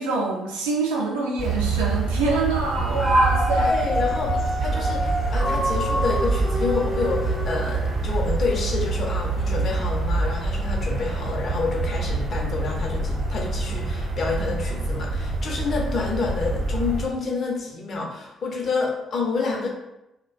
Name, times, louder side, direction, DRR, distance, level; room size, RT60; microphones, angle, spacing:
voice 1, 0.0-3.7, right 2 dB, 90° right, -3 dB, 0.4 m, -24 dB
sound 1, 1.4-17.1, right 3 dB, 60° right, 0.8 m, -26 dB
Dog, 2.8-8.1 8.6-8.7, left 1 dB, 20° right, 0.4 m, -27 dB
voice 2, 3.5-19.7, left 4 dB, 55° left, -1 dB, 0.6 m, -28 dB
2.4 x 2.1 x 2.4 m, 0.91 s
hypercardioid pair, 45°, 0 cm